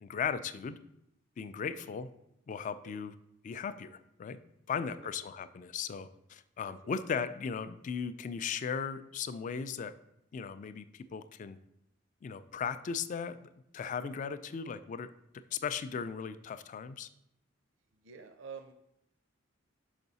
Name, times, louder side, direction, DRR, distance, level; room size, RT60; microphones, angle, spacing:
voice 1, 0.0-0.8 1.4-2.1 2.5-3.1 3.4-4.4 4.7-9.9 10.3-11.6 12.2-15.1 15.5-17.1, left 6 dB, 40° left, 14 dB, 0.3 m, -37 dB
voice 2, 4.7-5.1 6.8-7.0 17.9-18.7, right 6 dB, 75° right, 7 dB, 0.5 m, -49 dB
5.7 x 5.4 x 4.0 m, 0.83 s
head